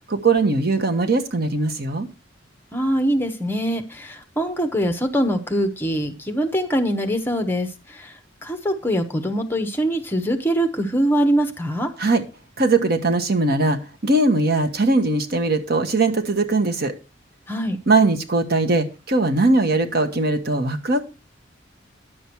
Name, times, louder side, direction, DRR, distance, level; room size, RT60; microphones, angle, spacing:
voice 1, 0.1-2.1 12.0-12.2 12.6-16.9 17.9-21.0, right 2 dB, 55° right, 6 dB, 1.3 m, -20 dB
voice 2, 2.7-8.1 8.4-11.9 17.5-17.8, equal, 10° left, 6 dB, 1.1 m, -23 dB
10.5 x 7.1 x 4.6 m, 0.29 s
head